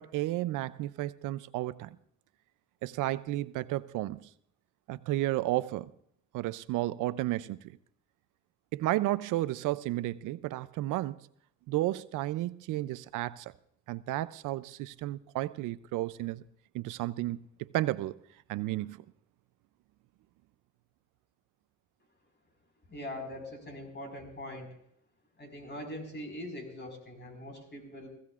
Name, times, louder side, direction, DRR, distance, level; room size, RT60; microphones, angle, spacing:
voice 1, 0.0-2.0 2.8-4.3 4.9-5.9 6.3-7.8 8.7-11.2 11.7-13.5 13.9-16.4 16.7-18.2 18.5-19.0, right 16 dB, 90° right, 0.5 m, -32 dB
voice 2, 22.9-24.7 25.4-28.1, left 1 dB, 35° left, 4.8 m, -42 dB
21.5 x 16.0 x 2.4 m
cardioid pair, 90°, 30 cm